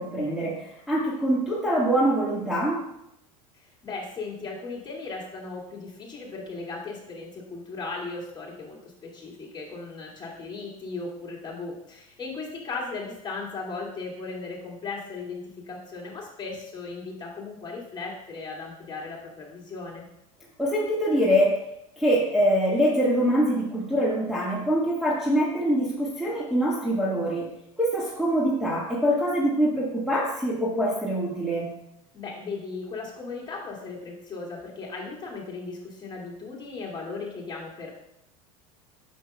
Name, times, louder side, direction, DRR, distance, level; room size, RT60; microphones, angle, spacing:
voice 1, 0.0-2.8 20.6-21.6 22.0-27.5 27.8-31.7, equal, ahead, -7 dB, 1.5 m, -24 dB
voice 2, 3.6-20.0 32.1-37.9, left 3 dB, 25° left, -3 dB, 2.3 m, -37 dB
8.4 x 6.7 x 2.3 m, 0.83 s
hypercardioid pair, 90°, 19 cm